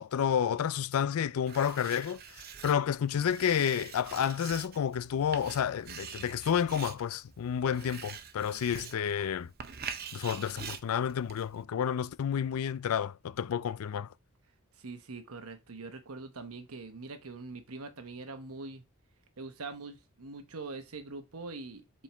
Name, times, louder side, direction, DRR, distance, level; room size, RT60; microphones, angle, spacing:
voice 1, 0.0-2.2 2.6-9.5 10.1-14.1, left 8 dB, 80° left, 0.4 m, -30 dB
Writing, 1.5-11.6, right 7 dB, 45° right, 0.6 m, -45 dB
voice 2, 14.7-18.8 19.4-22.0, right 3 dB, 85° right, 1.0 m, -43 dB
7.3 x 4.5 x 3.4 m
head